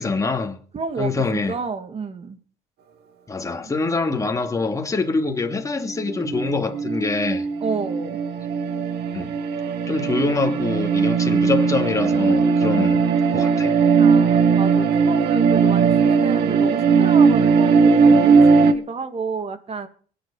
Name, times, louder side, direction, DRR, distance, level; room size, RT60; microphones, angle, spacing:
voice 1, 0.0-0.6 1.0-1.5 3.3-7.4 9.1-9.3 9.9-13.0 13.3-13.7, left 3 dB, 20° left, 2.7 m, -25 dB
voice 2, 0.7-2.4 7.6-8.2 14.0-19.9, right 5 dB, 35° right, 2.6 m, -30 dB
sound 1, 5.7-18.7, right 5 dB, 75° right, 2.5 m, -18 dB
22.5 x 10.0 x 5.9 m
cardioid pair, 110°, 17 cm